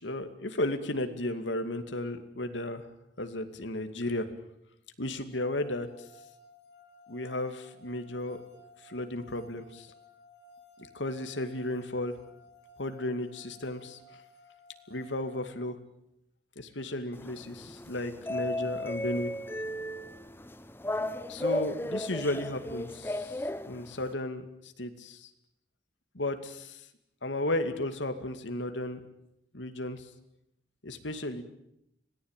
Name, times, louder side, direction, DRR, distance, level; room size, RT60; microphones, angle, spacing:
voice 1, 0.0-2.9 3.2-4.3 5.0-5.9 7.1-8.4 8.8-9.9 10.9-12.1 12.8-14.0 14.9-15.8 16.6-19.3 21.3-25.3 26.1-26.9 27.2-29.0 29.5-30.1 30.8-31.4, left 1 dB, 90° left, 8 dB, 2.3 m, -34 dB
sound 1, 5.3-15.5, left 2 dB, 65° left, 3.8 m, -57 dB
sound 2, 17.1-24.1, left 1 dB, 10° left, 0.9 m, -35 dB
25.5 x 18.0 x 9.0 m, 0.81 s
head